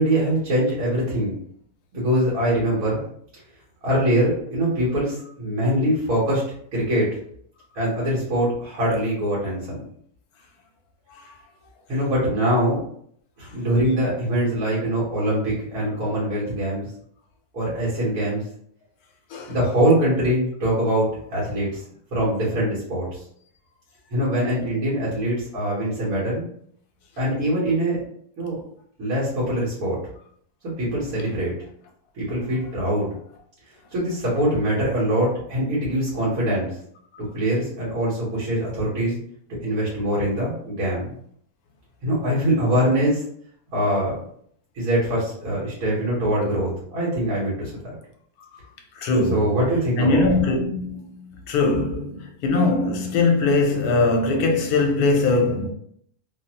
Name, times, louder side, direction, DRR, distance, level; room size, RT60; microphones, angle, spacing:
voice 1, 0.0-1.3 1.9-3.0 3.8-6.4 6.7-7.1 7.7-9.7 11.9-12.8 13.4-16.9 17.5-18.5 19.5-21.8 22.1-23.2 24.1-26.5 27.2-28.0 28.4-28.6 29.0-30.0 30.8-31.5 32.1-33.1 33.9-36.7 37.2-39.2 39.6-41.0 42.0-43.2 43.7-44.2 44.8-47.7 49.3-50.2, right 1 dB, 70° right, 1.5 m, -23 dB
voice 2, 49.0-49.6 50.0-55.7, left 3 dB, 80° left, 1.1 m, -21 dB
3.2 x 2.0 x 2.8 m
omnidirectional pair, 1.6 m